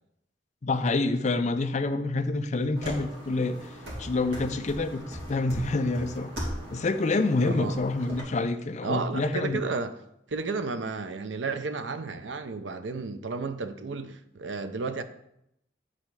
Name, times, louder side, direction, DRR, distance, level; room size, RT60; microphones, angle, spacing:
voice 1, 0.6-3.7 4.0-6.3 6.7-9.6, left 3 dB, 40° left, 0.5 m, -27 dB
sound 1, 2.7-8.2, equal, 70° right, 2.5 m, -39 dB
voice 2, 7.4-7.8 8.8-9.9 10.3-15.0, right 4 dB, 90° right, 0.7 m, -32 dB
10.0 x 4.2 x 4.7 m
head